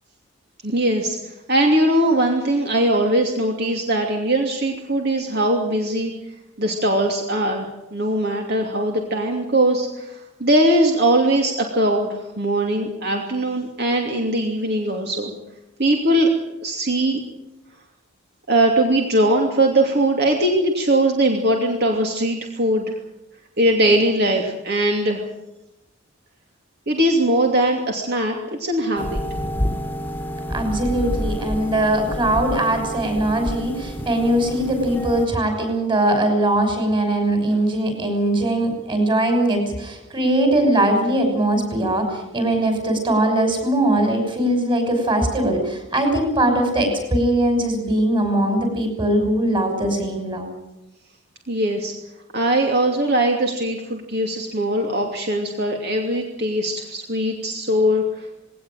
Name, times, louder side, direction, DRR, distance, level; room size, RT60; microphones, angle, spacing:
voice 1, 0.6-6.1 6.6-15.3 15.8-16.3 16.6-17.2 18.5-23.0 23.6-25.2 26.9-29.2 51.5-51.9 52.3-58.4, right 1 dB, 50° right, 2 dB, 2.8 m, -20 dB
sound 1, 29.0-35.3, equal, 10° left, 1.9 m, -28 dB
voice 2, 30.5-50.5, right 1 dB, 25° right, 5 dB, 6.3 m, -21 dB
20.0 x 18.5 x 9.1 m, 0.91 s
head